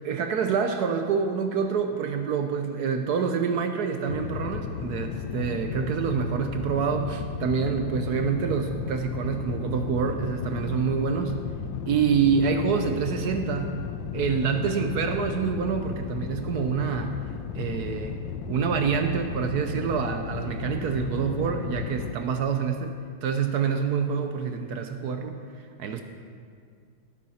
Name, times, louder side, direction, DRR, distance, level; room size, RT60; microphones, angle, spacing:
voice 1, 0.0-11.4 11.9-13.7 14.1-17.2 17.5-18.2 18.5-22.9 23.2-25.4 25.8-26.0, right 6 dB, 65° right, 6 dB, 1.1 m, -27 dB
sound 1, 4.1-22.1, left 7 dB, 85° left, 1.4 m, -34 dB
17.5 x 9.0 x 4.2 m, 2.2 s
omnidirectional pair, 2.0 m